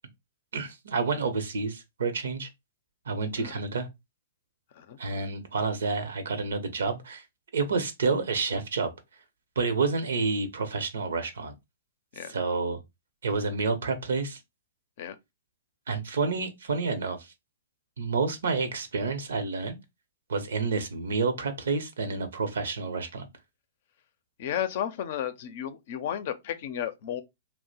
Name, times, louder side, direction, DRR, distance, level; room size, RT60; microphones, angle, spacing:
voice 1, 0.5-2.5 3.1-3.9 5.0-7.2 7.5-8.9 9.6-11.5 12.3-12.8 13.2-14.4 15.9-17.3 18.0-19.8 20.3-23.3, right 4 dB, 80° right, 0.8 m, -29 dB
voice 2, 24.4-27.2, left 10 dB, 55° left, 0.5 m, -33 dB
2.9 x 2.1 x 4.0 m
hypercardioid pair, 125°, 0 cm